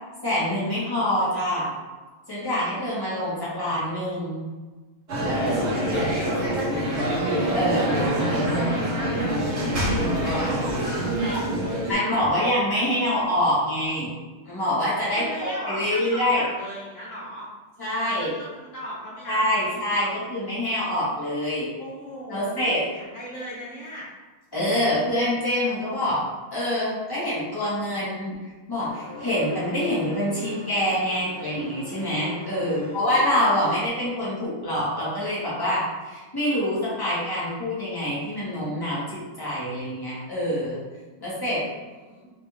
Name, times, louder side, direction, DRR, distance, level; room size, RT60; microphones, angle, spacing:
voice 1, 0.2-1.7 2.3-4.4 7.5-7.9 11.9-14.2 14.5-16.5 17.8-18.3 19.3-21.7 22.3-22.8 24.5-26.2 26.5-28.4 28.7-40.8 41.2-41.6, left 1 dB, 20° left, -9 dB, 0.7 m, -25 dB
sound 1, 5.1-11.9, right 1 dB, 50° right, 0.8 m, -25 dB
voice 2, 5.2-7.6 7.9-9.8 10.2-12.4 15.1-17.5 18.2-20.2 21.8-24.1 32.6-33.2 41.6-42.3, equal, 65° left, -6 dB, 0.8 m, -38 dB
sound 2, 28.9-33.9, left 1 dB, 40° left, 1.3 m, -41 dB
3.9 x 2.4 x 3.2 m, 1.3 s
omnidirectional pair, 2.3 m